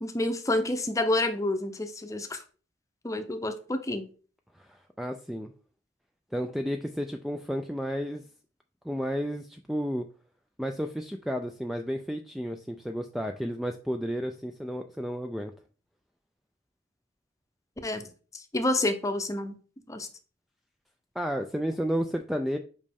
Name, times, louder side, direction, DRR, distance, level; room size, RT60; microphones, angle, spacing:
voice 1, 0.0-2.4 3.0-4.1 17.8-18.1 18.3-19.6 19.9-20.1, left 1 dB, 20° left, 7 dB, 0.7 m, -29 dB
voice 2, 4.5-5.5 6.3-8.2 8.8-10.1 10.6-15.5 21.2-22.6, equal, ahead, 4 dB, 0.3 m, -32 dB
5.2 x 5.2 x 3.5 m, 0.38 s
head